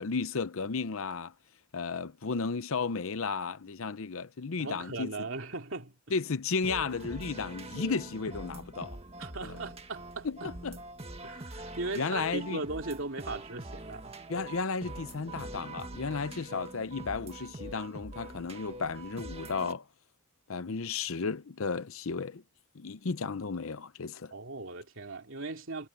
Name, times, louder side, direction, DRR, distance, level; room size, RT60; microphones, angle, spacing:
voice 1, 0.0-1.3 1.7-5.1 6.1-9.0 9.4-9.5 10.2-10.8 11.9-12.6 14.3-19.8 20.5-22.4 22.8-24.3, left 4 dB, 70° left, 0.7 m, -34 dB
voice 2, 4.6-6.0 9.2-10.5 11.2-14.1 24.3-25.9, right 3 dB, 60° right, 3.0 m, -38 dB
sound 1, 6.6-19.7, right 2 dB, 30° right, 1.8 m, -44 dB
head